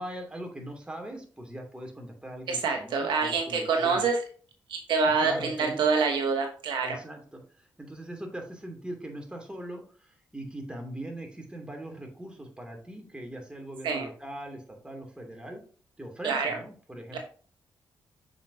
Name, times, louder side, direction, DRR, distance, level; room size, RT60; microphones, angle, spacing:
voice 1, 0.0-4.1 5.2-5.8 6.8-15.6 16.0-17.2, right 1 dB, 10° right, 2 dB, 2.8 m, -40 dB
voice 2, 2.5-4.2 4.7-7.0 13.8-14.1 16.2-16.6 17.1-17.2, right 5 dB, 75° right, 3 dB, 1.1 m, -26 dB
7.1 x 5.2 x 2.8 m, 0.41 s
supercardioid pair, 45°, 8 cm